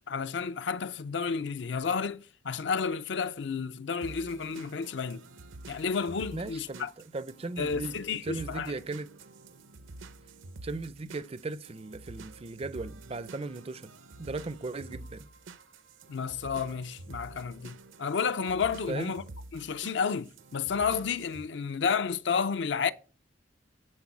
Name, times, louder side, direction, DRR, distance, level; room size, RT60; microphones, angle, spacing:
voice 1, 0.0-5.2 5.7-6.9 7.6-8.7 16.1-19.2 19.5-22.9, left 6 dB, 60° left, 0.5 m, -31 dB
sound 1, 4.0-21.5, right 2 dB, 75° right, 0.7 m, -48 dB
voice 2, 6.3-9.1 10.6-13.9 14.2-15.3 18.9-19.2, right 3 dB, 30° right, 0.4 m, -37 dB
10.5 x 4.5 x 6.1 m
head